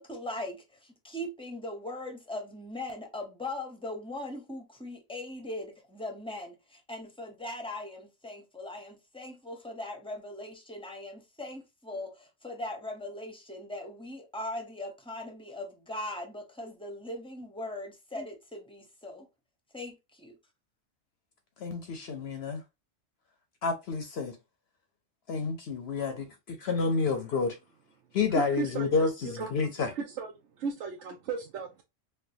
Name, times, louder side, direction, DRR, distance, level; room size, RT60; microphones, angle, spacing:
voice 1, 0.0-19.3 19.7-20.4, left 1 dB, 5° left, 0.6 m, -40 dB
voice 2, 21.6-22.6 23.6-24.4 25.3-27.6 28.1-29.9, left 4 dB, 60° left, 0.8 m, -29 dB
voice 3, 28.3-28.9 29.2-29.5 29.9-30.3 30.6-31.8, right 5 dB, 70° right, 0.9 m, -35 dB
4.3 x 2.2 x 2.6 m
omnidirectional pair, 1.3 m